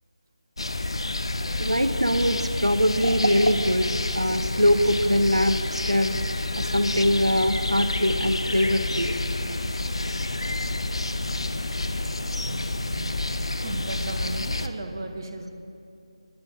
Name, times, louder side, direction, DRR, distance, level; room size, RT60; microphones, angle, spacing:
sound 1, 0.6-14.7, left 2 dB, 60° left, 0.7 m, -29 dB
voice 1, 1.6-3.9 4.1-6.1 6.6-9.1, equal, 85° right, 8 dB, 1.0 m, -22 dB
voice 2, 12.4-13.2 13.6-15.5, right 2 dB, 40° right, 5 dB, 1.2 m, -36 dB
29.5 x 10.5 x 2.8 m, 2.6 s
figure-of-eight pair, 160°, 3 cm